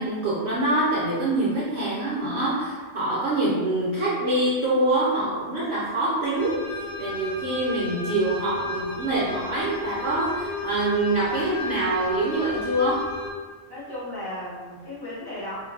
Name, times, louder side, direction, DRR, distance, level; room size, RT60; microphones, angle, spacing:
voice 1, 0.0-6.6 7.0-13.1, right 2 dB, 65° right, -7 dB, 0.9 m, -25 dB
sound 1, 6.3-13.3, left 3 dB, 60° left, 0.6 m, -33 dB
voice 2, 13.7-15.6, left 1 dB, 20° left, -9 dB, 0.8 m, -35 dB
2.4 x 2.2 x 3.1 m, 1.4 s
omnidirectional pair, 1.3 m